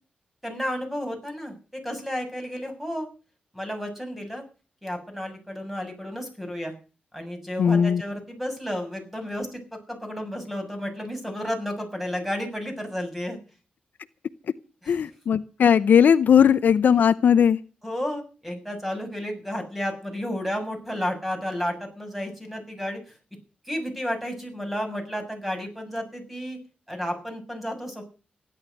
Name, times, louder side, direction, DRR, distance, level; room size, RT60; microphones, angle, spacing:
voice 1, 0.4-3.1 3.5-4.4 4.8-6.7 7.1-13.4 14.8-15.0 17.8-23.1 23.7-26.6 26.9-28.0, equal, 5° right, 4 dB, 6.9 m, -32 dB
voice 2, 7.6-8.0 14.9-17.6, left 8 dB, 70° left, 14 dB, 0.7 m, -18 dB
16.5 x 11.0 x 6.5 m, 0.35 s
wide cardioid pair, 125°, 3 cm